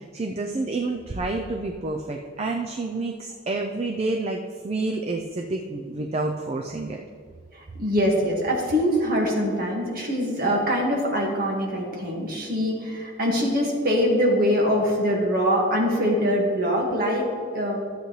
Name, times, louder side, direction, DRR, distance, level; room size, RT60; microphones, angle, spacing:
voice 1, 0.0-7.0, right 2 dB, 35° right, 3 dB, 0.5 m, -29 dB
voice 2, 7.8-17.8, equal, 50° right, -1 dB, 1.8 m, -23 dB
12.5 x 8.1 x 3.2 m, 2.1 s
head